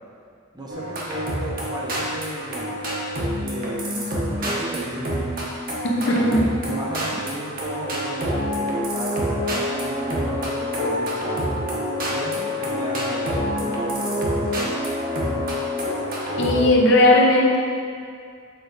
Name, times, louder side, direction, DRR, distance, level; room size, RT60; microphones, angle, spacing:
voice 1, 0.5-2.8 3.4-5.3 6.0-11.6 12.1-14.7, right 1 dB, 20° right, -3 dB, 0.8 m, -35 dB
sound 1, 0.7-16.7, equal, 40° right, 1.1 m, -27 dB
voice 2, 5.8-6.5 16.4-17.6, left 1 dB, 55° left, -1 dB, 0.9 m, -17 dB
6.9 x 5.1 x 4.0 m, 2.2 s
head